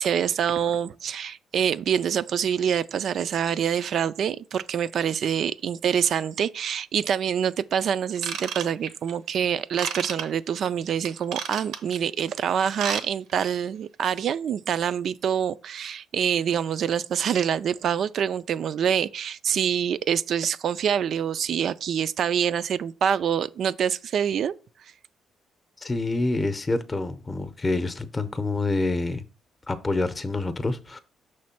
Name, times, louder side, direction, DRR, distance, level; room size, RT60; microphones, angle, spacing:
voice 1, 0.0-24.5, right 8 dB, 65° right, 0.3 m, -26 dB
Ratchet pawl / Tools, 8.2-9.1 9.8-10.2 11.0-12.0 12.6-13.0 13.3-13.5 14.0-14.1, right 7 dB, 85° right, 0.8 m, -31 dB
voice 2, 25.8-29.2 29.7-31.0, left 2 dB, 25° left, 0.7 m, -27 dB
6.0 x 3.2 x 5.7 m
cardioid pair, 90°, 0 cm